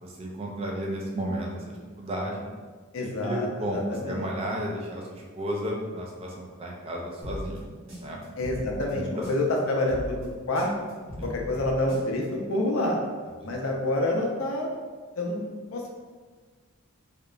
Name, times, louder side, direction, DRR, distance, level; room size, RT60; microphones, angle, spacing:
voice 1, 0.0-2.5 3.0-7.7 8.0-8.2 8.9-9.0 11.2-11.4 13.4-13.5, equal, 30° right, -2 dB, 0.4 m, -33 dB
voice 2, 2.9-4.3 8.4-10.7 11.2-13.0 13.4-14.7 15.1-16.0, left 1 dB, 75° left, 0 dB, 0.5 m, -28 dB
sound 1, 7.2-9.6 9.9-12.2, equal, 80° right, 1.2 m, -39 dB
2.8 x 2.1 x 2.4 m, 1.4 s
head